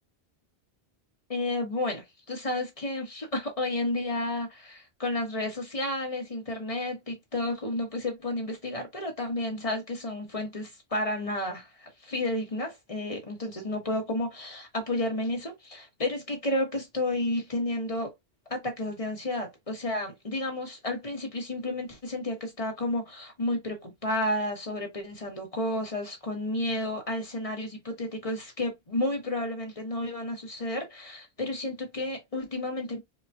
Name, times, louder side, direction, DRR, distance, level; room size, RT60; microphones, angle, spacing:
voice 1, 1.3-18.1 18.5-33.0, left 1 dB, 35° left, 1.4 m, -31 dB
5.1 x 2.4 x 2.7 m
omnidirectional pair, 1.1 m